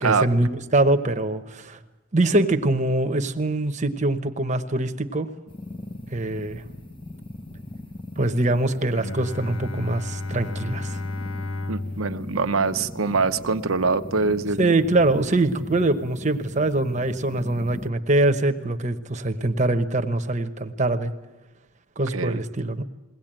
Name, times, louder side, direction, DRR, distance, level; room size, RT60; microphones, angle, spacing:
voice 1, 0.0-1.8 2.1-5.3 6.1-6.6 8.2-11.0 14.6-21.1 22.0-22.8, right 2 dB, 35° right, 8 dB, 1.1 m, -23 dB
sound 1, 5.5-17.9, left 1 dB, 25° left, 1.0 m, -40 dB
Bowed string instrument, 8.9-14.6, left 2 dB, 80° left, 0.8 m, -34 dB
voice 2, 11.7-14.7 22.1-22.4, right 4 dB, 85° right, 9 dB, 0.9 m, -24 dB
21.5 x 18.0 x 9.0 m, 1.1 s
head